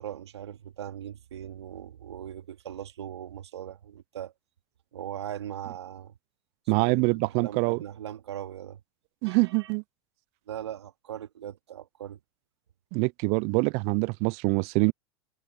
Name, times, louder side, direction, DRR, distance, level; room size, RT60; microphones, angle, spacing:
voice 1, 0.0-4.3 4.9-6.1 6.8-8.8 9.3-9.7 10.5-12.2, right 10 dB, 80° right, 2.3 m, -40 dB
voice 2, 6.7-7.8 9.2-9.8 12.9-14.9, right 32 dB, 55° right, 0.5 m, -25 dB
hypercardioid pair, 95°, 14 cm